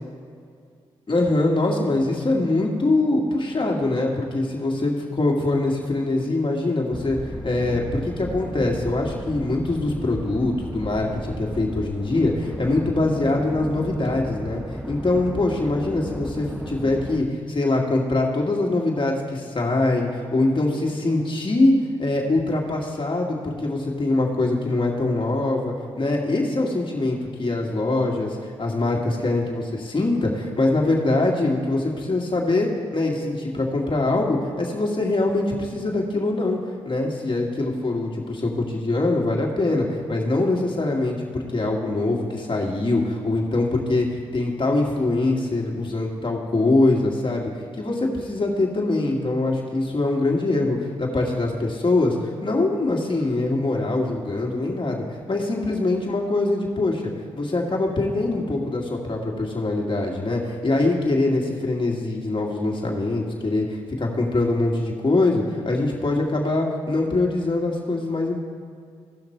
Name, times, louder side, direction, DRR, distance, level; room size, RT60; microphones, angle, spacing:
voice 1, 1.1-7.2 7.4-21.7 22.0-36.6 36.8-47.5 47.8-57.0 57.3-68.4, left 2 dB, 40° left, -1 dB, 2.1 m, -23 dB
sound 1, 6.9-17.2, right 1 dB, 5° right, 0.6 m, -34 dB
16.5 x 5.8 x 4.5 m, 2.2 s
supercardioid pair, 45°, 13 cm